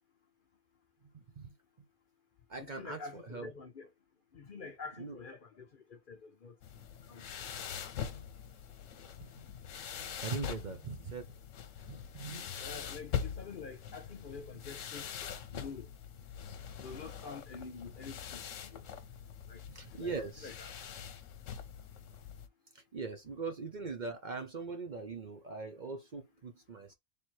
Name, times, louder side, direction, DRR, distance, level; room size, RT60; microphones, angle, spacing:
voice 1, 1.1-1.5 2.5-3.5 5.0-5.2 9.2-9.3 10.2-11.3 11.9-12.8 19.7-20.5 22.7-26.9, right 4 dB, 45° right, 0.7 m, -41 dB
voice 2, 2.6-3.9 4.3-6.6 7.1-7.7 12.3-15.1 15.5-15.9 16.8-18.9 19.5-19.6 19.9-20.1 20.4-20.7, left 4 dB, 50° left, 0.7 m, -47 dB
sound 1, 6.6-22.5, left 8 dB, 75° left, 1.1 m, -43 dB
3.4 x 3.0 x 4.4 m
omnidirectional pair, 1.3 m